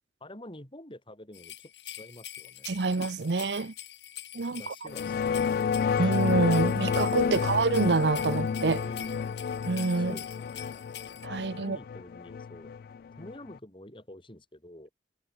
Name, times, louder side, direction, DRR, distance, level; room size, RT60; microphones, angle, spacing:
voice 1, 0.2-3.1 4.5-6.1 8.7-9.4 10.0-10.8 11.5-12.7 13.2-14.9, left 1 dB, 30° left, 7.2 m, -49 dB
sound 1, 1.3-11.3, left 11 dB, 90° left, 4.3 m, -45 dB
voice 2, 2.7-3.7 4.3-4.7 6.0-8.8 9.7-10.2 11.2-11.8, right 3 dB, 75° right, 0.8 m, -27 dB
sound 2, 4.9-13.6, left 6 dB, 55° left, 0.3 m, -30 dB
head